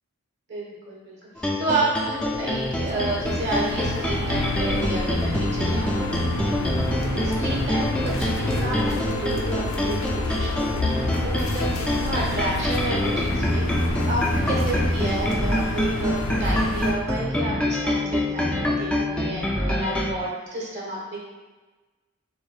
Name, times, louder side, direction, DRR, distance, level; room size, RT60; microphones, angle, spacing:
voice 1, 0.5-6.8 7.1-21.2, right 2 dB, 55° right, -4 dB, 1.2 m, -31 dB
sound 1, 1.4-20.2, left 1 dB, 5° left, 0.3 m, -26 dB
sound 2, 2.1-16.9, left 1 dB, 75° left, 0.6 m, -29 dB
6.7 x 2.7 x 2.4 m, 1.3 s
head